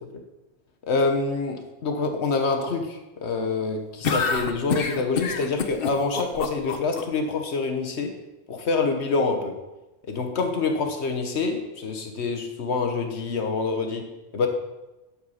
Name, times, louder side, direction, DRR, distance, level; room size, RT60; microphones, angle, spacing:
voice 1, 0.9-8.1 8.5-9.5 10.1-14.0 14.3-14.5, left 4 dB, 85° left, 5 dB, 1.4 m, -26 dB
sound 1, 4.0-7.0, left 5 dB, 60° left, 1.0 m, -26 dB
11.5 x 6.0 x 5.7 m, 1.0 s
omnidirectional pair, 1.1 m